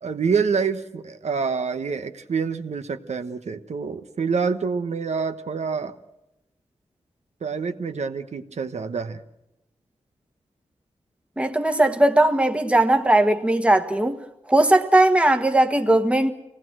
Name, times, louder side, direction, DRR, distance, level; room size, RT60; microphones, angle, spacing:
voice 1, 0.0-6.0 7.4-9.2, right 5 dB, 70° right, 1.2 m, -27 dB
voice 2, 11.4-14.2 14.5-16.3, right 1 dB, 10° right, 1.4 m, -18 dB
25.5 x 18.5 x 6.2 m
wide cardioid pair, 120°, 12 cm